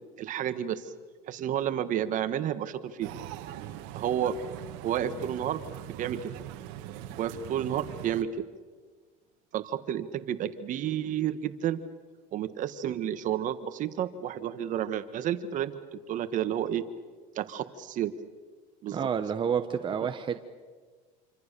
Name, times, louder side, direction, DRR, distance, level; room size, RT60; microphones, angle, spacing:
voice 1, 0.2-0.9 1.3-3.1 3.9-4.3 4.8-5.6 6.0-6.3 7.2-8.3 9.5-11.8 12.3-16.8 17.3-18.1 18.8-19.1, right 10 dB, 50° right, 11 dB, 1.6 m, -31 dB
sound 1, 3.0-8.2, right 12 dB, 80° right, 1.7 m, -41 dB
voice 2, 18.9-20.4, right 7 dB, 30° right, 7 dB, 1.1 m, -29 dB
27.5 x 25.5 x 6.9 m, 1.5 s
supercardioid pair, 115°, 16 cm